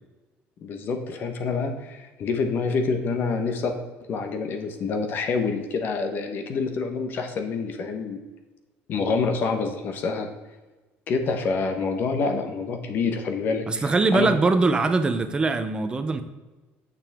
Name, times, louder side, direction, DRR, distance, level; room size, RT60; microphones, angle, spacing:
voice 1, 0.6-3.8 4.1-8.2 8.9-10.3 11.1-14.3, left 4 dB, 45° left, 5 dB, 1.1 m, -27 dB
voice 2, 13.7-16.2, right 3 dB, 20° right, 9 dB, 0.7 m, -22 dB
8.8 x 6.9 x 3.6 m, 1.2 s
cardioid pair, 150°, 5 cm